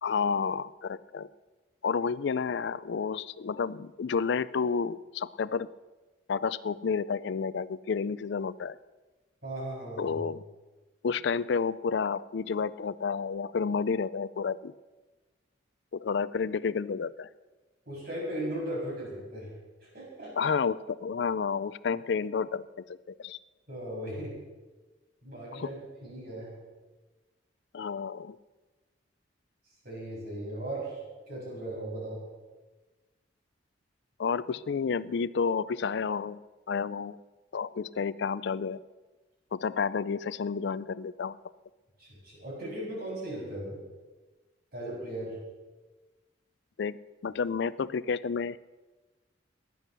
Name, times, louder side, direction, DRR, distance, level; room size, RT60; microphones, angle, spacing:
voice 1, 0.0-1.3 1.8-5.7 6.3-8.8 10.0-10.4 11.0-14.7 15.9-17.3 20.4-23.4 25.5-25.7 27.7-28.4 34.2-36.4 36.7-37.2 37.5-38.8 39.5-41.4 46.8-47.0 47.2-48.6, left 5 dB, 60° left, 18 dB, 0.4 m, -30 dB
voice 2, 9.4-10.2 17.9-19.5 19.8-20.5 23.7-24.3 25.2-26.6 29.8-31.0 31.3-32.2 42.0-43.8 44.7-45.4, right 1 dB, 50° right, -4 dB, 6.9 m, -37 dB
16.0 x 11.0 x 6.8 m, 1.2 s
head